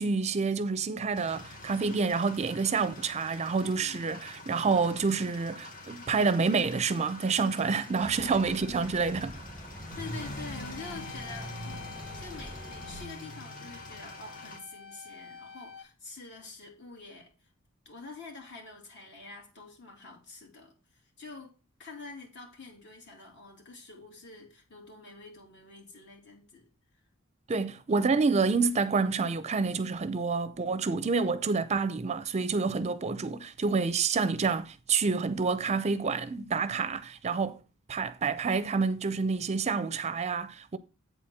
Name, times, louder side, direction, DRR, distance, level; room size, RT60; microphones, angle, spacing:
voice 1, 0.0-9.3 27.5-37.6 37.9-40.8, right 4 dB, 30° right, 0.5 m, -28 dB
sound 1, 1.1-14.6, left 1 dB, 40° left, 1.3 m, -44 dB
voice 2, 7.6-8.5 10.0-11.9 12.2-17.3 17.8-21.5 21.8-26.7 27.5-27.6, left 4 dB, 60° left, 2.7 m, -47 dB
sound 2, 8.0-13.1, equal, 5° left, 0.9 m, -46 dB
sound 3, 10.8-15.8, left 6 dB, 85° left, 2.8 m, -48 dB
8.1 x 4.3 x 6.1 m
head